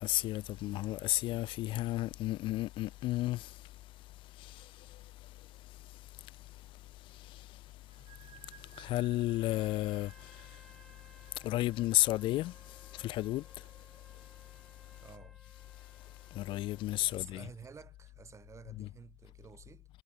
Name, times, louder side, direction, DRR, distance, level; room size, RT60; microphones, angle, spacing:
voice 1, 0.0-3.4 8.8-10.1 11.4-12.5 13.0-13.4 16.4-17.5 18.8-18.9, left 16 dB, 90° left, 0.9 m, -32 dB
sound 1, 7.9-15.3, right 11 dB, 70° right, 2.8 m, -61 dB
Trumpet, 9.3-16.9, left 1 dB, 5° left, 3.7 m, -63 dB
voice 2, 15.0-15.4 17.0-19.9, right 6 dB, 35° right, 3.9 m, -52 dB
cardioid pair, 115°, 8 cm